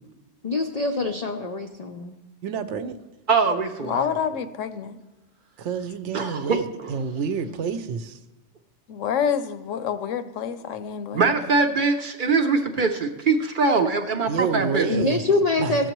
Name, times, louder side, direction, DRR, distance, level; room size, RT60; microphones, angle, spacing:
voice 1, 0.4-2.1 14.9-15.9, left 2 dB, 60° left, 4 dB, 0.4 m, -24 dB
voice 2, 2.4-3.0 5.6-8.2 14.3-15.9, right 6 dB, 75° right, 11 dB, 0.9 m, -29 dB
voice 3, 3.3-4.1 6.1-6.9 11.1-14.9, right 4 dB, 55° right, 6 dB, 0.6 m, -22 dB
voice 4, 3.9-5.0 8.9-11.3, left 8 dB, 85° left, 11 dB, 1.0 m, -28 dB
14.0 x 7.2 x 3.0 m, 1.1 s
omnidirectional pair, 1.3 m